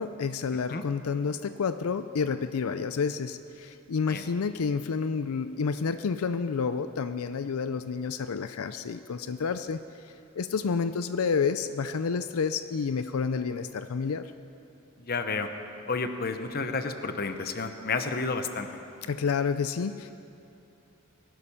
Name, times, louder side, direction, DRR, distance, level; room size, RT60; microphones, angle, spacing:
voice 1, 0.0-14.3 19.1-20.2, left 5 dB, 90° left, 11 dB, 0.5 m, -30 dB
voice 2, 15.0-15.5 15.9-18.8, left 4 dB, 45° left, 7 dB, 0.9 m, -31 dB
21.0 x 11.5 x 5.6 m, 2.8 s
head